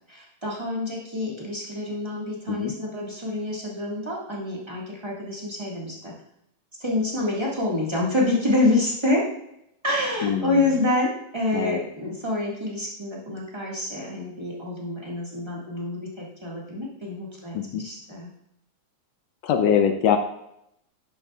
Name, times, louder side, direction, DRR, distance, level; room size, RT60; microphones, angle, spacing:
voice 1, 0.1-6.1 6.7-9.3 9.8-18.3, left 2 dB, 15° right, -5 dB, 1.0 m, -27 dB
voice 2, 10.2-10.7 11.5-11.8 17.5-17.8 19.4-20.2, left 8 dB, 75° left, 6 dB, 1.6 m, -23 dB
11.0 x 7.9 x 2.4 m, 0.79 s
omnidirectional pair, 3.4 m